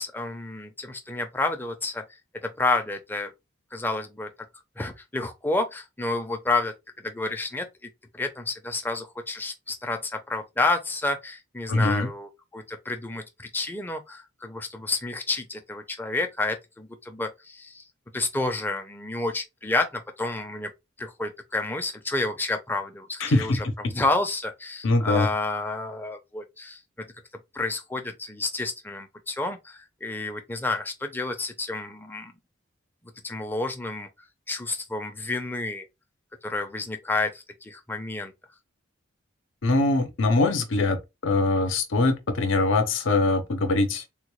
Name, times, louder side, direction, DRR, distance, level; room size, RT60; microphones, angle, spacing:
voice 1, 0.0-2.0 2.4-3.3 3.7-4.3 4.8-17.8 18.1-20.7 21.0-27.1 27.5-32.3 33.2-34.1 34.5-35.9 36.4-38.3, left 2 dB, 10° left, 0.5 m, -30 dB
voice 2, 11.7-12.1 23.2-23.7 24.8-25.3 39.6-44.0, left 2 dB, 75° left, 0.6 m, -23 dB
3.7 x 2.2 x 3.0 m
head